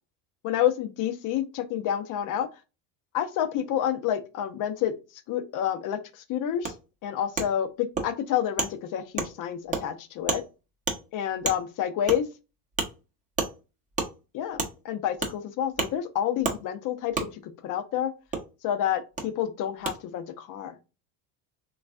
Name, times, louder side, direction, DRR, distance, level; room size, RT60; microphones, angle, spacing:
voice 1, 0.4-2.5 3.1-4.9 5.3-6.7 7.0-10.4 11.1-12.3 14.3-18.1 18.6-20.8, left 10 dB, 50° left, 0.6 m, -29 dB
Wood, 6.6-6.7 7.4-7.5 8.0-8.1 8.6-8.7 9.2-9.3 9.7-9.8 10.3-10.4 10.9-11.0 11.4-11.6 12.1-12.2 12.8-12.9 13.4-13.5 14.0-14.1 14.6-14.7 15.2-15.3 15.8-15.9 16.4-16.6 17.1-17.3 18.3-18.4 19.2-19.3 19.8-19.9, right 4 dB, 20° right, 0.7 m, -28 dB
3.1 x 2.3 x 2.4 m
supercardioid pair, 105°, 42 cm